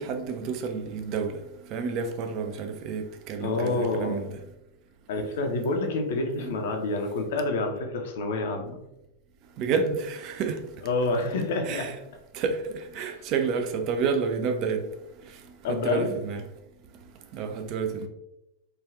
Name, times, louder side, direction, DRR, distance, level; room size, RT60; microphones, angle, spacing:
voice 1, 0.0-1.3 1.7-4.3 6.4-6.6 9.6-10.6 11.7-11.9 12.3-12.6 12.9-14.8 15.7-16.4 17.4-18.1, right 5 dB, 40° right, 6 dB, 0.4 m, -29 dB
voice 2, 3.4-4.2 5.1-8.8 10.8-11.9 13.0-13.2 15.6-16.2, left 3 dB, 55° left, 3 dB, 0.5 m, -28 dB
3.2 x 2.3 x 2.4 m, 0.88 s
figure-of-eight pair, 90°, 0 cm